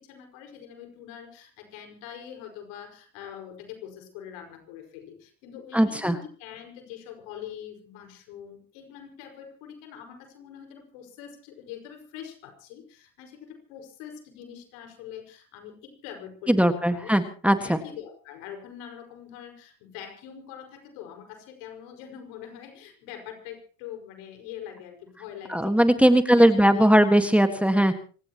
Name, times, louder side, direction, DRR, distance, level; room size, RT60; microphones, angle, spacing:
voice 1, 0.0-26.9, left 9 dB, 80° left, 5 dB, 5.6 m, -43 dB
voice 2, 5.7-6.2 16.5-17.8 25.5-27.9, equal, 5° right, 8 dB, 1.7 m, -19 dB
26.0 x 18.0 x 3.0 m, 0.39 s
supercardioid pair, 100°, 40 cm